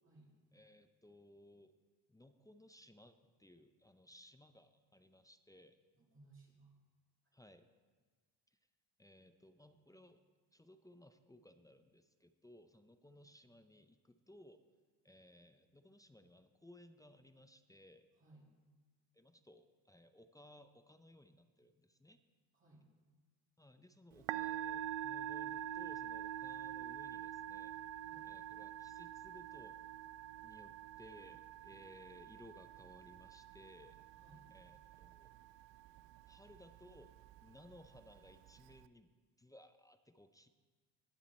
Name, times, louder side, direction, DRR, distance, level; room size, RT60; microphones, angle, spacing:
voice 1, 0.5-1.7 2.1-5.8 7.3-7.7 8.5-8.6 9.0-10.2 10.5-14.6 15.0-18.1 19.1-22.2 23.6-27.8 28.2-29.8 30.4-34.0 34.5-35.3 36.3-37.1 37.4-39.1 39.4-40.5, left 1 dB, 10° left, 9 dB, 0.5 m, -61 dB
voice 2, 5.9-6.7 18.2-18.5 22.5-22.9 28.0-28.3 34.2-34.5, right 2 dB, 25° right, -3 dB, 2.6 m, -62 dB
Musical instrument, 24.1-38.9, right 12 dB, 70° right, 0.6 m, -46 dB
20.0 x 7.4 x 4.2 m, 1.4 s
cardioid pair, 110°, 45 cm